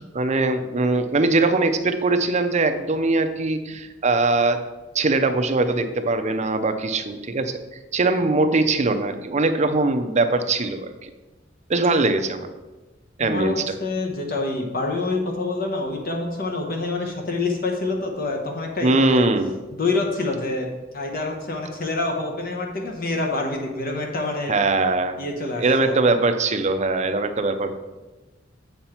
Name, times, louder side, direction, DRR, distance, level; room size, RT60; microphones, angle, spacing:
voice 1, 0.0-4.6 4.9-7.6 7.9-11.1 11.7-12.5 13.2-13.7 18.8-19.5 24.5-25.2 25.6-27.7, right 3 dB, 35° right, 8 dB, 0.6 m, -21 dB
voice 2, 13.2-13.5 13.8-19.3 19.7-20.7 20.9-24.5 25.2-26.0, left 3 dB, 50° left, 1 dB, 1.0 m, -26 dB
7.7 x 5.6 x 4.4 m, 1.2 s
head